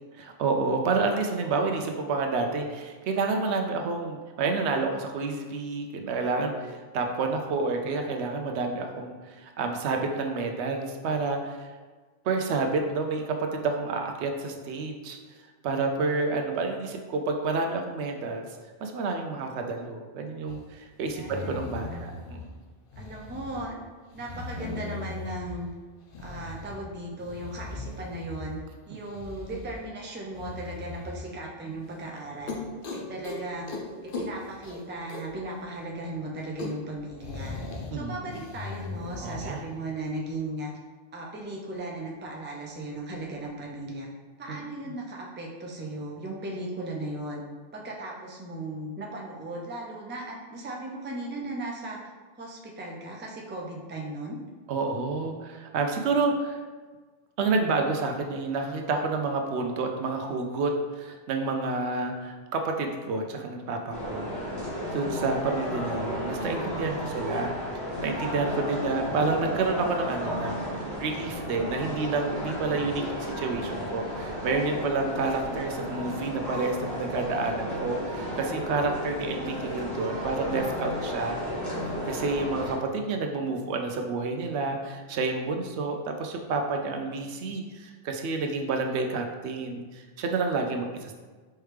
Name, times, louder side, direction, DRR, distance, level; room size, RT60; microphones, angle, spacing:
voice 1, 0.4-11.7 12.2-15.2 15.6-18.5 18.8-22.5 37.9-38.3 39.2-39.6 44.5-44.6 54.7-56.6 57.4-64.6 64.9-67.5 68.0-70.6 71.0-81.4 82.1-91.1, right 3 dB, 90° right, 4 dB, 0.9 m, -29 dB
sound 1, 20.5-20.6 21.0-22.4 22.9-23.7 24.1-25.6 26.1-26.8 27.2-28.6 29.0-29.8 30.3-31.2 31.7-31.8 32.2-32.3 32.5-33.4 33.7-33.8 34.1-35.4 35.7-35.8 36.1-36.2 36.4-37.9 38.3-39.5, left 3 dB, 60° left, 0.8 m, -38 dB
voice 2, 21.1-21.6 21.9-22.0 23.0-23.7 24.1-25.7 26.2-28.6 28.9-32.5 32.9-33.7 34.0-37.6 37.9-40.7 41.1-44.1 44.4-47.4 47.7-52.0 52.3-54.4, right 2 dB, 15° right, -2 dB, 0.4 m, -37 dB
sound 2, 63.9-82.7, equal, 15° left, 1.2 m, -33 dB
4.6 x 3.2 x 3.3 m, 1.4 s
omnidirectional pair, 1.1 m